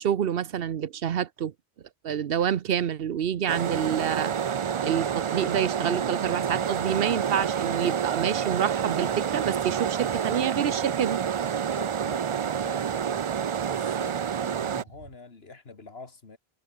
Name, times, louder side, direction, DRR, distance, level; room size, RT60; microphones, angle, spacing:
voice 1, 0.0-1.5 2.0-11.2, right 9 dB, 65° right, 0.9 m, -28 dB
sound 1, 3.5-14.8, right 8 dB, 50° right, 0.4 m, -28 dB
voice 2, 11.8-13.2 13.7-16.4, left 4 dB, 75° left, 2.5 m, -46 dB
omnidirectional pair, 1.1 m